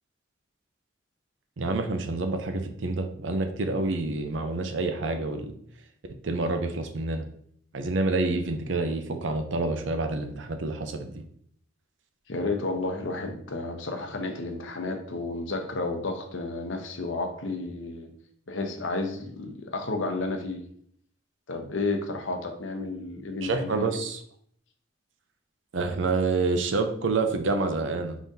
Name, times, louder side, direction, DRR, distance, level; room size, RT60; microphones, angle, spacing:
voice 1, 1.6-5.5 6.2-7.3 7.7-11.2 23.4-24.2 25.7-28.2, right 3 dB, 80° right, 6 dB, 0.6 m, -28 dB
voice 2, 12.3-18.1 18.5-20.6 21.5-23.9, left 3 dB, 85° left, 5 dB, 0.8 m, -32 dB
4.9 x 3.8 x 2.7 m, 0.64 s
head